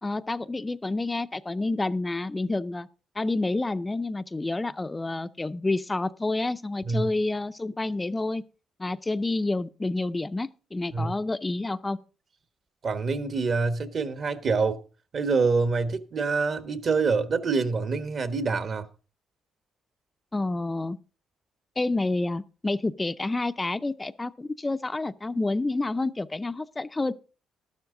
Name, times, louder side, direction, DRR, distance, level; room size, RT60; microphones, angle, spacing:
voice 1, 0.0-2.9 3.2-8.4 8.8-12.0 20.3-21.0 21.8-27.1, left 2 dB, 20° left, 0.5 m, -29 dB
voice 2, 12.8-14.8 15.1-18.9, right 4 dB, 50° right, 1.2 m, -26 dB
12.5 x 11.5 x 3.8 m
cardioid pair, 90°, 0 cm